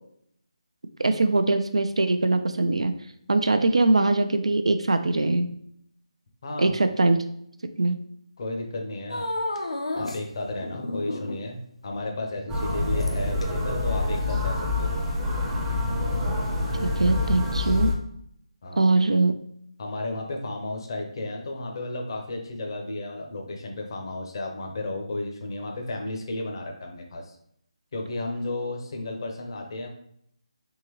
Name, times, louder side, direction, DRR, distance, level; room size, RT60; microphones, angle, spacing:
voice 1, 1.0-2.9 3.3-5.5 6.6-7.2 7.8-8.0 16.8-17.9 18.8-19.4, right 2 dB, 70° right, 9 dB, 0.4 m, -22 dB
voice 2, 6.4-6.7 8.4-9.3 10.0-15.0 18.6-18.9 19.8-27.4 27.9-29.9, left 2 dB, 45° left, 2 dB, 0.7 m, -33 dB
sound 1, 9.1-10.2 10.6-11.5 13.0-13.4 14.2-14.3, left 1 dB, 85° left, 0.6 m, -31 dB
sound 2, 12.5-17.9, left 2 dB, 10° right, 0.6 m, -26 dB
3.6 x 2.9 x 2.9 m, 0.70 s
figure-of-eight pair, 155°, 3 cm